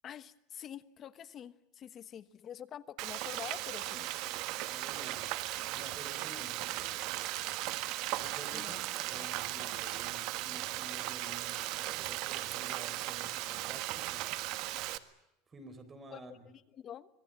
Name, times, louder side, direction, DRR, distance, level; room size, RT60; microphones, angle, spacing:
voice 1, 0.0-4.0 8.5-8.9 16.1-17.1, left 9 dB, 30° left, 13 dB, 1.2 m, -47 dB
Frying (food), 3.0-15.0, right 16 dB, 50° right, 1.5 m, -37 dB
voice 2, 4.6-5.3 5.7-6.9 8.2-8.7 9.1-14.2 15.5-16.4, right 2 dB, 20° right, 10 dB, 4.2 m, -51 dB
26.0 x 20.5 x 9.0 m, 0.84 s
supercardioid pair, 150°, 0 cm